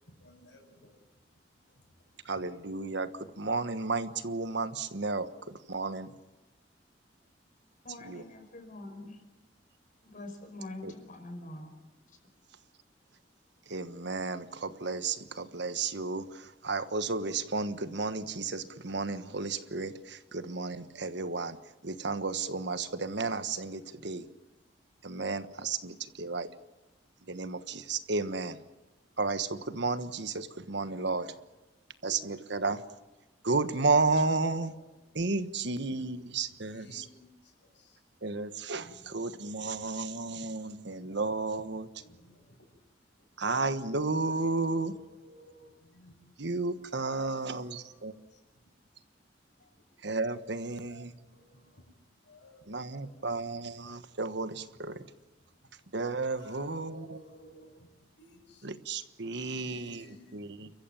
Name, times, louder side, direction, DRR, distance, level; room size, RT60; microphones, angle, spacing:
voice 1, 0.1-0.9 1.7-1.8 34.6-35.0 35.6-36.0 36.5-38.0 38.8-40.0 40.5-40.6 42.0-42.6 44.2-46.3 47.1-48.7 49.6-49.7 50.3-51.9 52.2-53.3 56.3-58.7 59.4-60.6, left 1 dB, 70° left, 3 dB, 7.1 m, -57 dB
voice 2, 2.2-6.1 8.0-8.2 10.8-10.9 13.7-21.6 21.8-24.3 25.0-26.5 27.3-28.6 29.2-31.3 32.0-32.8 33.4-34.7 35.1-37.1 38.2-41.9 43.4-44.9 46.4-48.1 50.0-51.1 52.7-55.0 55.9-57.2 58.6-60.7, right 3 dB, 65° right, 11 dB, 1.3 m, -33 dB
voice 3, 7.8-9.2 10.0-11.7, left 2 dB, 45° left, 4 dB, 5.1 m, -44 dB
29.5 x 14.5 x 9.1 m, 1.1 s
head